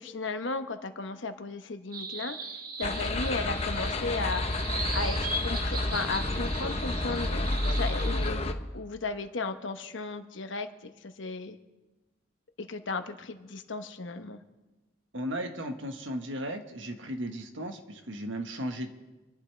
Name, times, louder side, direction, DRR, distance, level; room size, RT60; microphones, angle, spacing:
voice 1, 0.0-2.4 2.8-4.5 4.9-11.6 12.6-14.4, left 3 dB, 70° left, 8 dB, 1.0 m, -35 dB
sound 1, 1.9-8.3, right 3 dB, 45° right, 1.5 m, -38 dB
sound 2, 2.8-8.5, left 2 dB, 30° left, 0.8 m, -30 dB
voice 2, 15.1-19.0, equal, 70° right, 5 dB, 1.5 m, -36 dB
27.5 x 11.5 x 3.4 m, 1.1 s
head